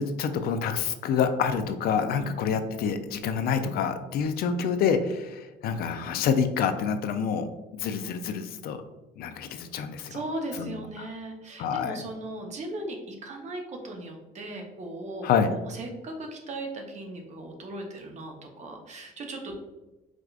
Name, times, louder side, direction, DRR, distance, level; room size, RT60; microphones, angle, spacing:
voice 1, 0.0-8.8 9.2-10.1 10.6-10.7 11.6-12.0 15.2-15.5, left 6 dB, 65° left, 8 dB, 0.4 m, -27 dB
voice 2, 10.1-15.3 15.7-19.6, right 2 dB, 45° right, 2 dB, 0.7 m, -37 dB
4.8 x 2.4 x 2.3 m, 1.1 s
cardioid pair, 110°, 17 cm